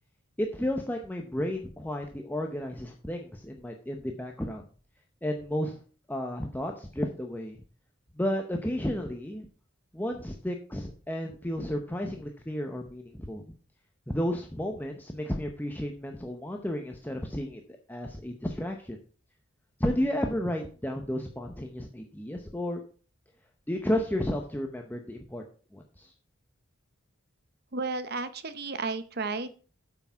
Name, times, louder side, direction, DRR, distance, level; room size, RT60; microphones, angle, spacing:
voice 1, 0.4-4.6 5.2-5.8 6.1-7.6 8.1-9.5 9.9-13.4 14.1-19.0 19.8-22.8 23.7-25.4 25.7-26.1, left 1 dB, 10° left, 3 dB, 0.7 m, -32 dB
voice 2, 27.7-29.5, right 3 dB, 50° right, 12 dB, 0.8 m, -33 dB
8.7 x 6.0 x 5.6 m, 0.40 s
head